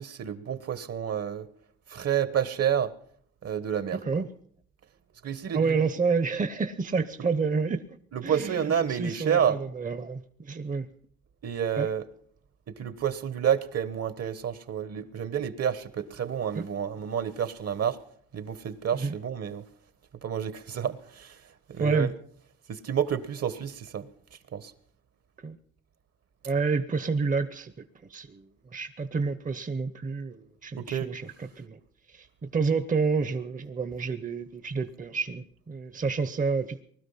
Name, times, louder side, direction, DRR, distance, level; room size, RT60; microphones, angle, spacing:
voice 1, 0.0-1.5 1.9-2.9 3.4-4.2 5.2-5.9 8.1-9.6 11.4-12.0 12.7-18.0 18.3-19.6 20.2-21.4 21.7-22.1 22.7-24.1 24.5-24.7 30.8-31.1, right 8 dB, 55° right, 14 dB, 1.3 m, -29 dB
voice 2, 5.5-7.8 8.2-10.9 11.8-11.9 16.5-16.7 18.9-19.1 21.8-22.1 25.4-25.6 26.4-27.8 28.1-28.5 28.7-31.8 32.1-36.8, right 4 dB, 25° right, 12 dB, 0.9 m, -29 dB
20.0 x 12.5 x 5.7 m, 0.62 s
cardioid pair, 90°, 30 cm